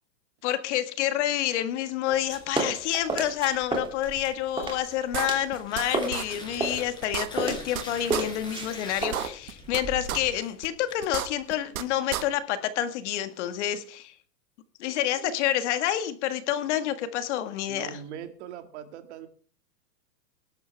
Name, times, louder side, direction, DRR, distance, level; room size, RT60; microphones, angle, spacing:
voice 1, 0.4-14.2 14.8-18.0, left 12 dB, 45° left, 10 dB, 1.8 m, -28 dB
sound 1, 2.1-5.6 5.9-10.3, right 3 dB, 10° right, 2.9 m, -32 dB
sound 2, 4.6-4.7 5.1-5.8 6.1-6.2 6.6-6.7 7.0-7.8 8.1-8.2 8.6-8.7 9.0-9.8 10.1-10.2 10.6-10.7 11.0-11.8 12.1-12.2, right 12 dB, 60° right, 1.6 m, -31 dB
Tearing, 5.4-11.6, left 3 dB, 10° left, 4.5 m, -44 dB
voice 2, 15.0-15.4 17.7-19.3, right 9 dB, 45° right, 8 dB, 2.2 m, -41 dB
19.0 x 11.5 x 3.5 m, 0.43 s
hypercardioid pair, 150°, 47 cm